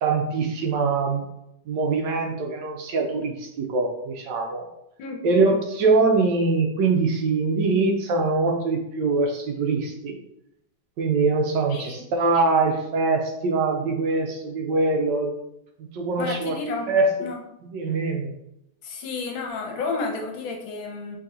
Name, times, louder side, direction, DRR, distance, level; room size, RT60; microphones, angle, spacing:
voice 1, 0.0-1.2 1.7-4.7 5.2-10.1 11.0-15.4 15.9-16.6 16.9-17.1 17.6-18.3, right 3 dB, 70° right, 2 dB, 1.2 m, -23 dB
voice 2, 11.7-12.1 16.2-16.9 17.2-17.4 18.8-21.2, left 4 dB, 80° left, 1 dB, 1.6 m, -31 dB
5.1 x 3.1 x 2.7 m, 0.81 s
omnidirectional pair, 2.1 m